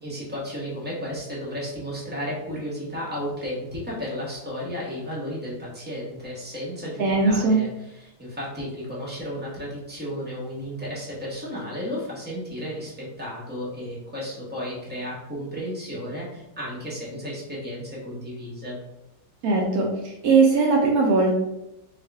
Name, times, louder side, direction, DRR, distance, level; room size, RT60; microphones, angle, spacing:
voice 1, 0.0-18.8, equal, 10° right, -6 dB, 0.7 m, -33 dB
voice 2, 7.0-7.6 19.4-21.3, right 3 dB, 70° right, 0 dB, 0.9 m, -20 dB
3.5 x 2.4 x 3.4 m, 0.88 s
omnidirectional pair, 2.1 m